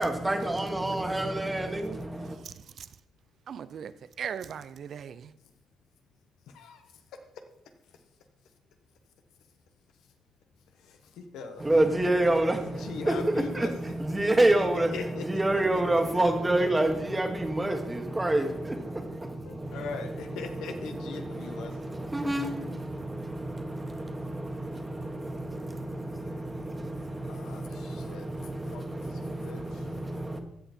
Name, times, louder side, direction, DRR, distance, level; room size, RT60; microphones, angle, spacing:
voice 1, 0.0-2.4 11.6-30.4, right 1 dB, 15° right, 1.5 m, -29 dB
voice 2, 2.3-3.0 3.5-5.3, right 8 dB, 60° right, 0.5 m, -39 dB
voice 3, 10.8-11.6 12.8-13.7 14.9-15.2 19.4-22.0 27.3-28.2 28.7-29.1 29.4-29.8, left 5 dB, 85° left, 1.2 m, -40 dB
15.5 x 5.6 x 4.4 m
cardioid pair, 90°, 0 cm